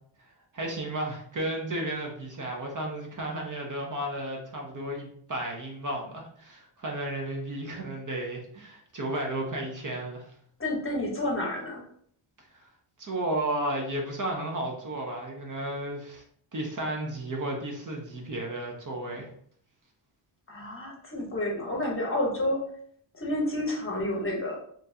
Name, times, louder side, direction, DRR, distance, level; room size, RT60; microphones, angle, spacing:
voice 1, 0.5-10.2 12.5-12.6 13.0-16.2 16.5-19.3, right 1 dB, 40° right, 0 dB, 0.7 m, -33 dB
voice 2, 10.6-11.8 20.5-22.6 23.1-24.6, left 1 dB, 25° left, -1 dB, 0.8 m, -30 dB
4.4 x 2.6 x 2.7 m, 0.62 s
wide cardioid pair, 145°, 49 cm